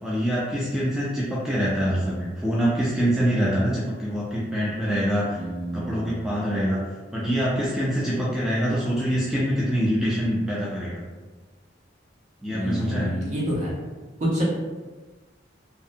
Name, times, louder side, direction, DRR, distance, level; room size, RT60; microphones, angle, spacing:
voice 1, 0.0-5.4 5.7-6.8 7.1-11.0 12.4-13.1, equal, 5° right, -7 dB, 0.3 m, -25 dB
voice 2, 5.3-6.2 12.5-13.7 14.2-14.6, equal, 40° right, -5 dB, 0.7 m, -27 dB
2.6 x 2.0 x 2.6 m, 1.3 s
head